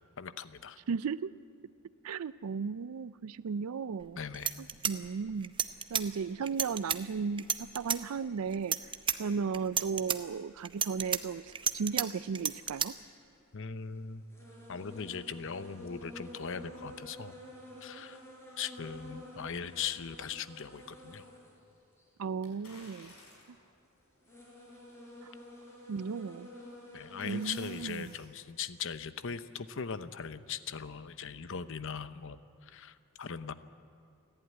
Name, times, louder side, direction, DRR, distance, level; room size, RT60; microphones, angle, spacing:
voice 1, 0.2-0.8 4.2-4.6 13.5-14.2 14.7-17.3 17.8-18.2 18.6-21.3 26.9-33.5, left 6 dB, 60° left, 12 dB, 0.8 m, -40 dB
voice 2, 0.9-1.3 2.0-4.2 4.6-5.5 5.9-8.8 9.2-12.9 22.2-23.1 25.2-25.3 25.9-26.5 27.2-28.1, right 5 dB, 80° right, 17 dB, 0.4 m, -35 dB
sound 1, 4.0-4.1 4.3-6.1 6.5-7.0 7.4-8.0 8.5-9.2 9.5-10.2 10.7-12.1 12.4-12.9, right 7 dB, 25° right, 0.8 m, -31 dB
sound 2, 11.1-11.5 13.2-13.3 13.8-13.9 14.3-21.6 22.0-22.1 22.7-23.6 24.1-27.9, left 1 dB, 10° left, 5.6 m, -50 dB
sound 3, 22.4-23.7 24.3-24.4 25.9-26.3 26.7-28.3 28.6-28.7, left 3 dB, 85° left, 5.9 m, -55 dB
29.5 x 11.5 x 9.6 m, 2.5 s
head